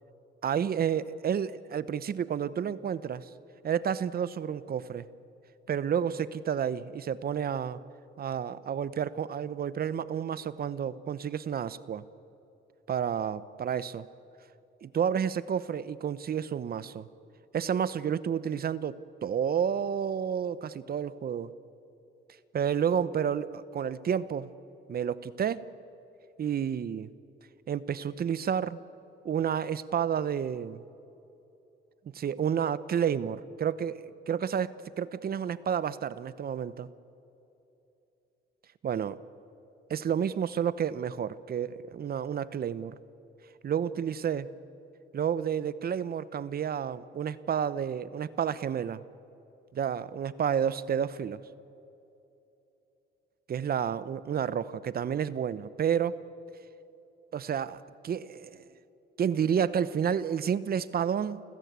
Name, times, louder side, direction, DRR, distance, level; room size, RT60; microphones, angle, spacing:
voice 1, 0.4-3.3 3.6-5.1 5.7-7.8 8.2-12.0 12.9-14.1 14.8-17.1 17.5-21.5 22.5-24.5 24.9-25.7 26.4-27.1 27.7-28.8 29.2-30.8 32.1-36.9 38.8-39.2 39.9-43.0 43.6-44.5 45.1-49.0 49.7-51.4 53.5-56.2 57.3-58.6 59.2-61.4, right 8 dB, 50° right, 17 dB, 0.9 m, -30 dB
29.0 x 15.5 x 8.3 m, 2.9 s
cardioid pair, 90°, 20 cm